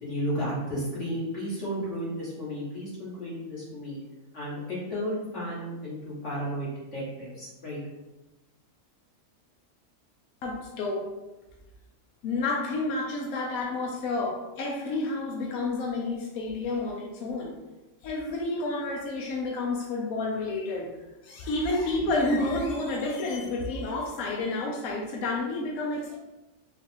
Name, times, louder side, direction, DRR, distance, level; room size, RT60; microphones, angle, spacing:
voice 1, 0.0-4.0 4.3-7.8, equal, 55° left, -9 dB, 2.1 m, -33 dB
voice 2, 10.4-11.0 12.2-17.5 18.0-20.9 21.2-26.2, left 2 dB, 75° left, -1 dB, 1.0 m, -30 dB
4.3 x 2.4 x 3.5 m, 1.1 s
omnidirectional pair, 1.5 m